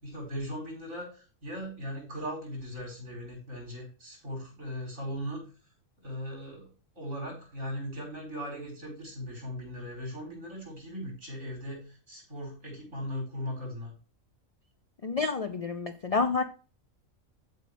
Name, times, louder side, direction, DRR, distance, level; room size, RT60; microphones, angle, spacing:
voice 1, 0.0-5.4 6.0-6.7 7.0-13.9, equal, 75° right, 5.3 m, -38 dB
voice 2, 15.0-16.4, left 4 dB, 65° left, 0.3 m, -29 dB
13.5 x 5.2 x 3.3 m
omnidirectional pair, 1.4 m